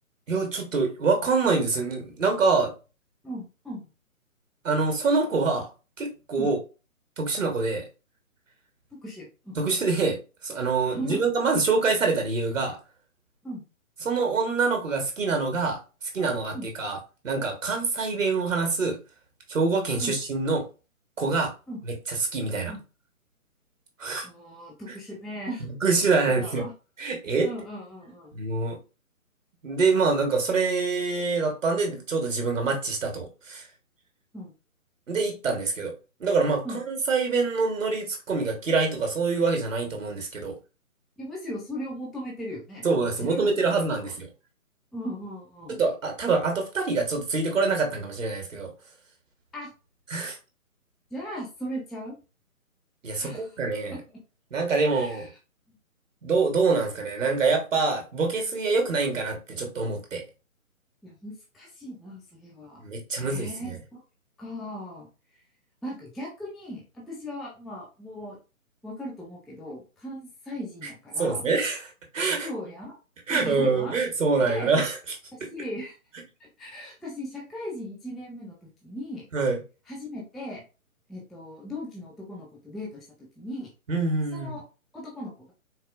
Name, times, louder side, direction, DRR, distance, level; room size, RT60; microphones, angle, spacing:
voice 1, 0.3-2.7 4.6-5.7 6.0-6.6 7.2-7.8 9.6-10.2 10.4-12.8 14.0-17.0 17.2-19.0 19.5-20.6 21.2-21.5 21.9-22.0 22.3-22.7 24.0-24.3 25.8-26.6 27.0-27.5 28.3-28.8 29.6-33.6 35.1-35.9 36.2-40.6 42.8-44.3 45.7-48.7 50.1-50.4 53.0-54.0 54.5-55.3 56.2-60.2 62.8-63.8 71.2-72.5 73.3-75.0 79.3-79.6 83.9-84.5, right 4 dB, 60° right, 3 dB, 1.1 m, -25 dB
voice 2, 3.2-3.9 6.4-6.5 9.0-9.6 10.8-11.2 13.4-13.6 16.5-16.7 20.0-20.1 21.7-21.8 22.7-22.8 24.2-25.7 26.3-26.7 27.4-28.3 34.3-34.5 36.6-36.8 41.2-44.1 44.9-45.8 49.5-49.7 51.1-52.2 53.2-53.5 53.9-54.0 54.9-55.3 55.7-55.8 61.0-62.8 63.2-64.0 64.4-65.1 65.3-65.4 65.8-68.4 68.8-71.4 72.4-73.0 73.3-73.9 74.4-74.7 75.3-76.0 76.4-79.2 79.9-80.6 81.1-83.1 83.4-83.7 84.3-84.6 84.9-85.5, equal, ahead, -4 dB, 0.3 m, -38 dB
4.1 x 2.2 x 2.2 m, 0.32 s
figure-of-eight pair, 140°, 43 cm